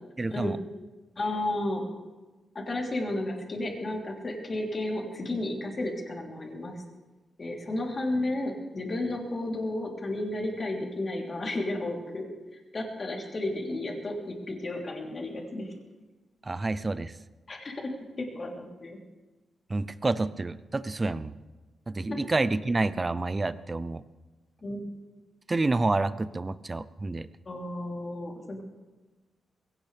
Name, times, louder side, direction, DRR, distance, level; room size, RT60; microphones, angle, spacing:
voice 1, 0.2-0.6 16.4-17.2 19.7-21.3 21.9-24.0 25.5-27.3, right 2 dB, 25° right, 14 dB, 0.6 m, -28 dB
voice 2, 1.2-1.8 2.7-6.8 7.4-12.3 12.7-15.7 17.5-17.9 18.2-18.5 18.8-19.0 22.1-22.2 24.6-24.8 27.4-28.6, left 1 dB, 35° left, -1 dB, 3.5 m, -32 dB
21.5 x 17.0 x 3.5 m, 1.2 s
wide cardioid pair, 125°, 0 cm